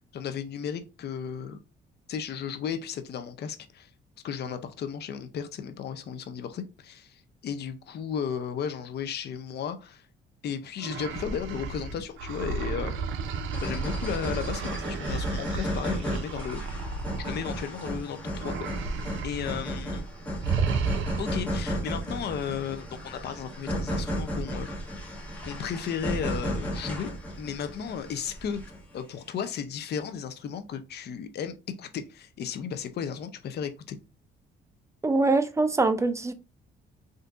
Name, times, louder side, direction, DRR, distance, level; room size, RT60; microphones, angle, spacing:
voice 1, 0.1-1.6 2.1-3.9 4.2-10.1 10.4-12.9 13.6-16.9 17.2-18.7 19.2-20.1 21.2-24.7 25.4-27.1 27.4-28.6 28.9-34.0, left 7 dB, 55° left, 0.5 m, -34 dB
sound 1, 10.8-18.0 18.4-19.6 19.9-20.1 20.4-21.5, right 5 dB, 80° right, 0.5 m, -33 dB
sound 2, 13.5-28.9, equal, 5° left, 1.3 m, -34 dB
voice 2, 35.0-36.3, right 3 dB, 15° right, 0.4 m, -23 dB
3.6 x 2.6 x 2.4 m
cardioid pair, 90°, 20 cm